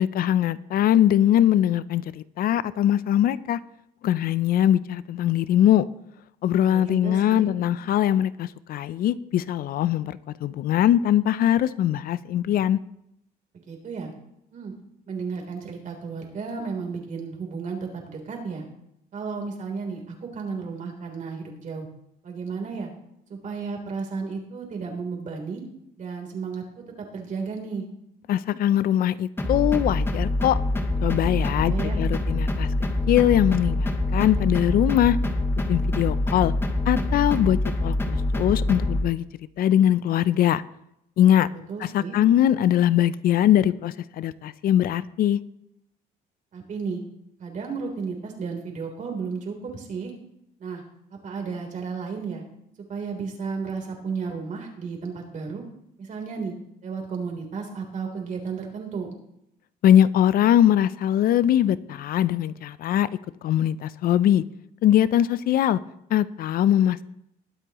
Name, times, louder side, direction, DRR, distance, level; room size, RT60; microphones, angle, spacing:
voice 1, 0.0-3.6 4.0-5.9 6.4-12.8 28.3-30.6 31.0-32.7 33.1-35.2 35.7-36.5 36.9-39.3 39.6-40.6 41.2-41.5 41.8-45.4 59.8-63.1 63.4-64.4 64.8-65.8 66.1-67.0, left 11 dB, 60° left, 17 dB, 0.5 m, -21 dB
voice 2, 6.7-7.5 13.7-14.1 14.5-14.7 15.1-18.7 19.1-21.9 22.2-22.9 23.3-25.6 26.0-26.6 27.0-27.9 31.6-32.0 41.5-42.2 46.5-47.0 47.4-50.1 50.6-50.8 51.2-52.4 52.9-55.6 56.0-56.5 56.8-59.1, right 5 dB, 50° right, 1 dB, 3.5 m, -33 dB
sound 1, 29.4-39.0, left 2 dB, 15° left, 1.4 m, -25 dB
21.0 x 8.2 x 3.0 m, 0.79 s
cardioid pair, 110°, 17 cm